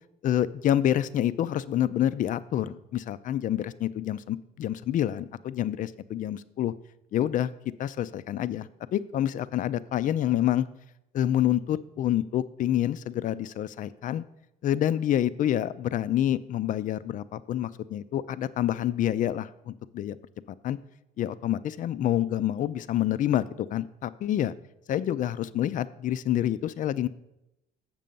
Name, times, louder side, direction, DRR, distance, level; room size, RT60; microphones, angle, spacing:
voice 1, 0.2-6.7 7.1-7.5 7.8-10.7 11.1-14.2 14.6-20.2 20.6-20.8 21.2-24.5 24.9-27.1, left 11 dB, 50° left, 16 dB, 0.4 m, -27 dB
7.5 x 6.7 x 5.3 m, 0.88 s
cardioid pair, 110°, 17 cm